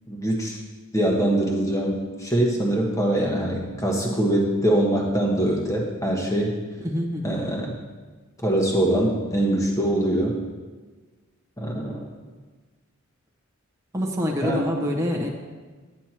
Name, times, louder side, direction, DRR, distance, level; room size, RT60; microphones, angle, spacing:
voice 1, 0.1-0.6 0.9-6.5 7.2-7.8 8.4-10.4 11.6-12.1 14.4-14.7, right 1 dB, 15° left, -1 dB, 1.4 m, -23 dB
voice 2, 6.8-7.4 13.9-15.3, left 1 dB, 15° right, -1 dB, 1.0 m, -26 dB
10.0 x 9.6 x 3.0 m, 1.3 s
head